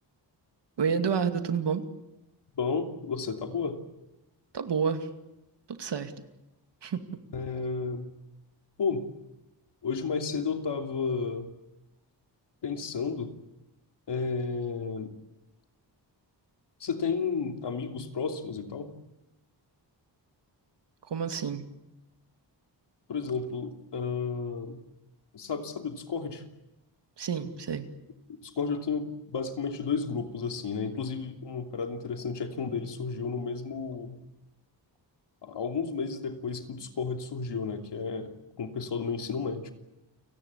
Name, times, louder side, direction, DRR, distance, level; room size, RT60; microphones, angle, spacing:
voice 1, 0.8-1.8 4.5-5.1 5.7-6.1 6.8-7.2 21.1-21.7 27.2-27.9, right 6 dB, 75° right, 8 dB, 2.4 m, -29 dB
voice 2, 2.5-3.8 7.3-8.1 8.8-9.1 9.8-11.6 12.6-13.3 14.1-15.1 16.8-18.9 23.1-24.8 25.3-26.4 28.4-34.2 35.4-39.7, left 5 dB, 70° left, 5 dB, 3.0 m, -32 dB
29.5 x 18.5 x 8.4 m, 0.93 s
wide cardioid pair, 145°, 43 cm